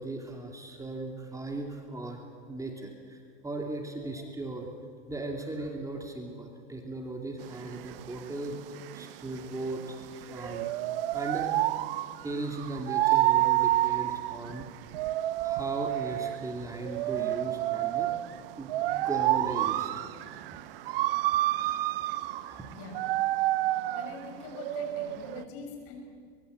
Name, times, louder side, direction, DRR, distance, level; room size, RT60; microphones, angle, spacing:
voice 1, 0.0-2.2 2.5-4.7 5.1-10.7 11.1-11.7 12.2-14.7 15.4-18.1 18.6-21.4 22.3-22.7, right 2 dB, 10° right, 2 dB, 2.6 m, -38 dB
sound 1, 7.4-25.4, right 15 dB, 70° right, 1.0 m, -29 dB
voice 2, 23.9-26.0, left 5 dB, 50° left, 3 dB, 6.7 m, -43 dB
23.5 x 21.5 x 8.1 m, 2.1 s
hypercardioid pair, 115°, 30 cm